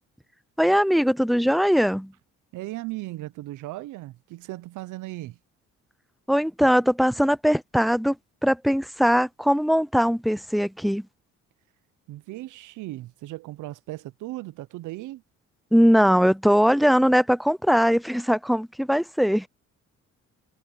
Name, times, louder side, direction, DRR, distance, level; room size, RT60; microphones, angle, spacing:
voice 1, 0.6-2.1 6.3-8.2 8.4-11.1 15.7-19.5, equal, ahead, 0.5 m, -20 dB
voice 2, 2.5-5.4 12.1-15.2, right 17 dB, 85° right, 0.7 m, -37 dB
cardioid pair, 90°, 30 cm